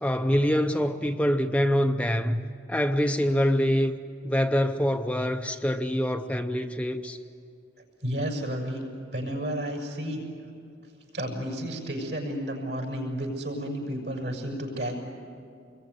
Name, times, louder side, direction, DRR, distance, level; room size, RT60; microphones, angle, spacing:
voice 1, 0.0-2.4 2.7-3.9 4.2-7.2, equal, 5° left, 6 dB, 0.7 m, -25 dB
voice 2, 8.0-8.8 9.1-10.2 11.1-15.0, equal, 65° right, 1 dB, 6.4 m, -31 dB
27.0 x 22.0 x 9.6 m, 2.4 s
head